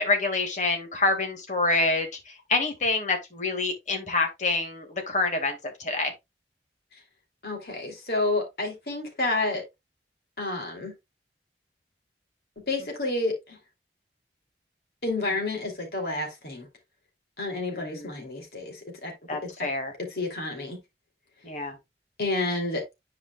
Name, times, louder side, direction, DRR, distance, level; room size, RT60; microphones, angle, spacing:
voice 1, 0.0-2.1 2.5-6.1 17.7-18.1 19.3-19.9 21.4-21.8, left 3 dB, 45° left, 1.9 m, -27 dB
voice 2, 7.4-9.6 10.4-10.9 12.7-13.6 15.0-16.7 17.4-19.1 20.1-20.8 22.2-22.8, left 2 dB, 60° left, 2.8 m, -29 dB
10.5 x 4.9 x 2.3 m
head